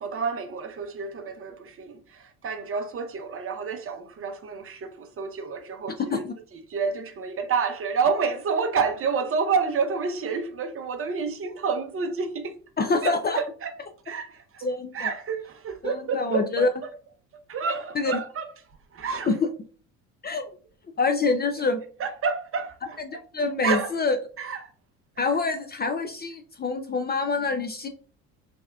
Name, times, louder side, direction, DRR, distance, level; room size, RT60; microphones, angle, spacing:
voice 1, 0.0-6.2 6.7-12.5 13.0-13.7 14.0-16.9 17.5-18.5 18.9-19.3 22.0-23.0 23.6-23.9 24.4-24.7 25.2-25.3, right 5 dB, 35° right, 0.7 m, -29 dB
voice 2, 12.8-13.4 14.6-15.1 15.8-16.7 18.0-18.2 19.3-19.5 20.2-20.5 21.0-21.8 23.0-24.1 25.2-27.9, left 4 dB, 25° left, 0.4 m, -26 dB
4.2 x 3.3 x 2.2 m
hypercardioid pair, 70°, 41 cm